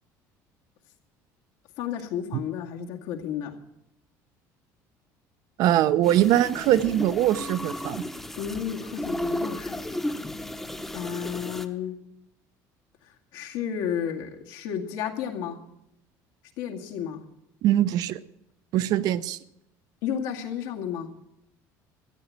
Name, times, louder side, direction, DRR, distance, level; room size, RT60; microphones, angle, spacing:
voice 1, 1.8-3.5 8.4-10.2 10.9-12.0 13.3-15.6 16.6-17.2 20.0-21.1, left 8 dB, 80° left, 2 dB, 2.2 m, -32 dB
voice 2, 5.6-8.1 17.6-18.2 18.7-19.4, right 12 dB, 60° right, 14 dB, 0.7 m, -22 dB
sound 1, 6.0-11.7, left 1 dB, 5° left, 0.9 m, -34 dB
14.0 x 8.5 x 8.8 m, 0.81 s
cardioid pair, 150°, 7 cm